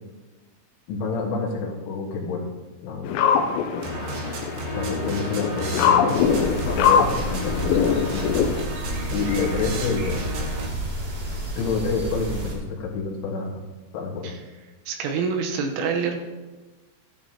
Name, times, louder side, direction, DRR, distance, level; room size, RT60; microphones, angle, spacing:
voice 1, 0.9-2.5 2.8-3.1 4.7-8.5 9.1-10.2 11.6-13.6 13.9-14.3, left 4 dB, 70° left, -2 dB, 3.9 m, -28 dB
sound 1, 3.0-8.6, left 7 dB, 90° left, 3.4 m, -23 dB
sound 2, 3.8-10.7, right 1 dB, 65° right, 2.7 m, -32 dB
sound 3, 6.2-12.5, equal, 40° right, 3.6 m, -31 dB
voice 2, 14.9-16.2, right 5 dB, 80° right, 3 dB, 3.5 m, -26 dB
15.0 x 11.0 x 2.9 m, 1.2 s
omnidirectional pair, 5.9 m